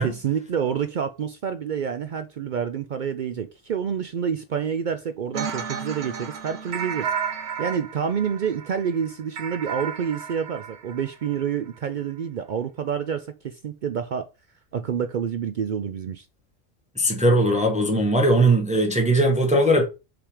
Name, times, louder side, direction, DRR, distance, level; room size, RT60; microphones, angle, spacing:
voice 1, 0.0-7.1 7.6-14.3 14.7-16.3, right 7 dB, 75° right, 0.4 m, -28 dB
sound 1, 5.3-11.5, right 7 dB, 60° right, 0.9 m, -33 dB
voice 2, 17.0-19.8, right 1 dB, 5° right, 1.1 m, -19 dB
5.8 x 3.4 x 4.9 m
omnidirectional pair, 1.4 m